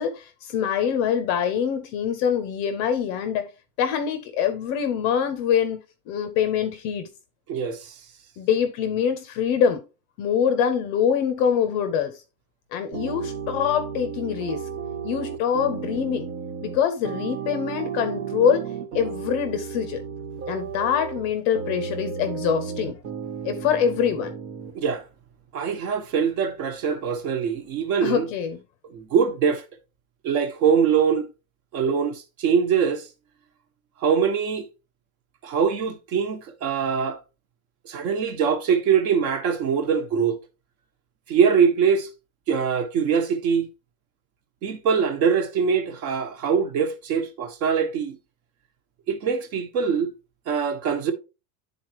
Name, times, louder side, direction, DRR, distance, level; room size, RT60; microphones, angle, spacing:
voice 1, 0.0-3.5 3.8-5.8 6.1-7.1 8.4-9.8 10.2-12.2 12.7-14.6 15.0-16.3 16.6-18.7 18.9-20.0 20.5-23.0 23.4-24.3 28.0-28.6, left 8 dB, 30° left, 0.4 m, -24 dB
voice 2, 7.5-7.9 24.7-25.0 25.5-28.3 28.9-29.6 30.2-31.3 31.7-33.1 34.0-34.7 35.4-37.2 37.8-40.4 41.3-42.1 42.5-43.7 44.6-48.2 49.1-50.1 50.5-51.1, right 6 dB, 60° right, 1.3 m, -23 dB
sound 1, 12.9-24.7, right 7 dB, 75° right, 1.5 m, -33 dB
10.5 x 4.0 x 2.9 m
supercardioid pair, 175°, 46 cm